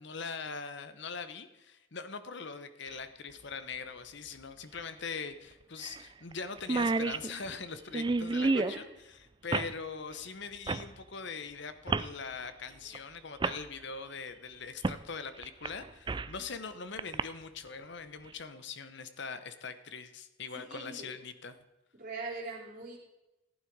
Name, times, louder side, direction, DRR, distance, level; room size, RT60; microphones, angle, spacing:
voice 1, 0.0-21.6, left 5 dB, 55° left, 11 dB, 0.9 m, -42 dB
sound 1, 2.9-3.0 4.7-4.8 5.2-5.3 5.8-6.0 6.3-6.4 6.6-8.8 9.5-9.7 10.7-10.9 11.9-12.1 12.9-13.0 13.4-13.6 14.8-15.0 15.4-16.4 17.0-17.2, right 3 dB, 20° right, 0.3 m, -30 dB
voice 2, 8.4-8.8 20.6-21.1 22.0-23.0, right 2 dB, 40° right, -7 dB, 3.6 m, -41 dB
15.0 x 8.9 x 4.7 m, 1.0 s
head